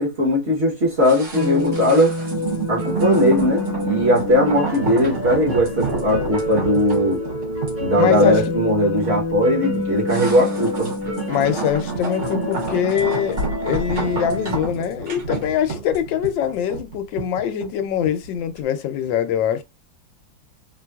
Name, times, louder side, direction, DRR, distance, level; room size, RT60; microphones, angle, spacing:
voice 1, 0.0-2.2 2.7-7.2 7.8-10.9, equal, 40° right, 1.1 m, -19 dB
sound 1, 1.0-18.3 18.6-18.7, right 4 dB, 75° right, 2.4 m, -30 dB
sound 2, 1.3-14.6, left 2 dB, 15° right, 0.6 m, -28 dB
voice 2, 8.0-8.4 11.3-19.6, left 9 dB, 85° left, 1.3 m, -23 dB
4.4 x 2.3 x 2.3 m
omnidirectional pair, 2.0 m